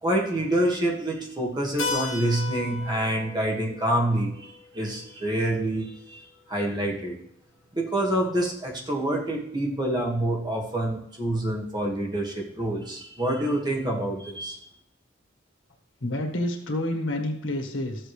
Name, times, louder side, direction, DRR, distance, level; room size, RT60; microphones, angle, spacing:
voice 1, 0.0-6.2 6.5-7.2 7.7-14.6, right 1 dB, 20° right, -1 dB, 1.9 m, -27 dB
Keyboard (musical), 1.8-6.2, left 4 dB, 70° left, 1.5 m, -36 dB
voice 2, 16.0-18.1, left 1 dB, 85° left, 3 dB, 1.6 m, -29 dB
13.5 x 7.8 x 3.3 m, 0.77 s
head